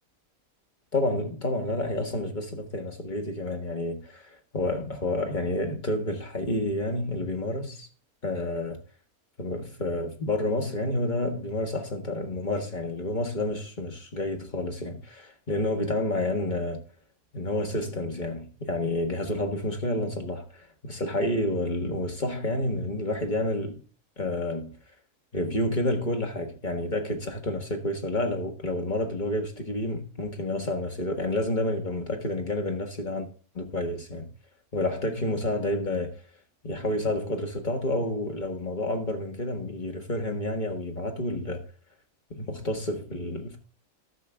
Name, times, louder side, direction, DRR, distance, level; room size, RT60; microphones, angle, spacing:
voice 1, 0.9-7.9 8.2-8.8 9.4-16.8 17.3-23.8 24.2-24.8 25.3-33.3 33.5-34.3 34.7-36.1 36.6-41.6 42.3-43.6, left 1 dB, 35° left, 1.5 m, -29 dB
14.0 x 5.7 x 3.5 m
omnidirectional pair, 1.5 m